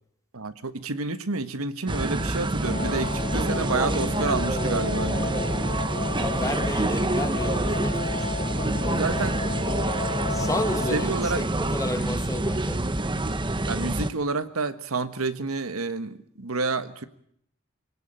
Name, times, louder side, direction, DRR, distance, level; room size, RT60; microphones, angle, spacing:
voice 1, 0.3-5.4 8.8-10.1 10.9-11.4 13.7-17.0, right 3 dB, 90° right, 11 dB, 1.4 m, -29 dB
sound 1, 1.9-14.1, right 1 dB, 25° right, 1.0 m, -27 dB
sound 2, 2.6-11.0, left 4 dB, 45° left, 1.5 m, -34 dB
voice 2, 6.2-8.3 10.3-12.8, left 1 dB, 15° left, 8 dB, 1.9 m, -32 dB
24.5 x 18.5 x 8.9 m, 0.69 s
head